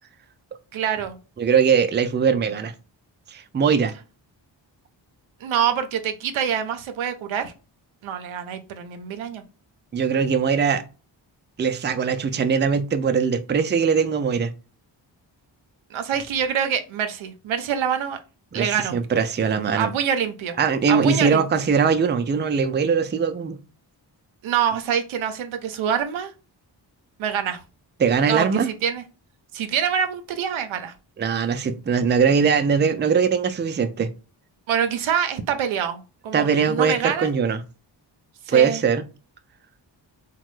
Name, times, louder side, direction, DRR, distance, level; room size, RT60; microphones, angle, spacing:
voice 1, 0.7-1.2 5.4-7.5 8.0-9.4 15.9-18.2 18.5-19.0 19.8-20.6 20.9-21.4 24.4-26.3 27.2-27.6 28.3-29.0 29.5-30.9 34.7-37.3 38.5-38.8, right 8 dB, 85° right, 0.6 m, -25 dB
voice 2, 1.4-2.7 3.3-3.9 9.9-10.8 11.6-14.5 18.5-19.9 20.6-23.6 28.0-28.7 31.2-34.1 36.3-37.6 38.5-39.0, right 6 dB, 25° right, 0.4 m, -21 dB
3.0 x 2.2 x 3.0 m
cardioid pair, 45°, 47 cm